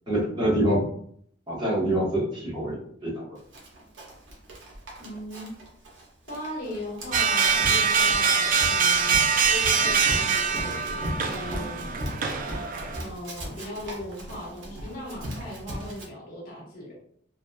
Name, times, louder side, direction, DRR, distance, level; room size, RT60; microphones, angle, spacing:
voice 1, 0.1-0.9 1.5-3.4, right 1 dB, 25° right, -8 dB, 1.0 m, -26 dB
Run, 3.5-16.0, equal, 90° right, 0.7 m, -38 dB
voice 2, 5.0-5.5 6.3-9.2 9.4-12.1 13.0-16.9, left 1 dB, 50° left, -5 dB, 1.0 m, -38 dB
sound 1, 7.1-13.0, right 6 dB, 45° right, 0.3 m, -23 dB
2.9 x 2.2 x 2.2 m, 0.63 s
head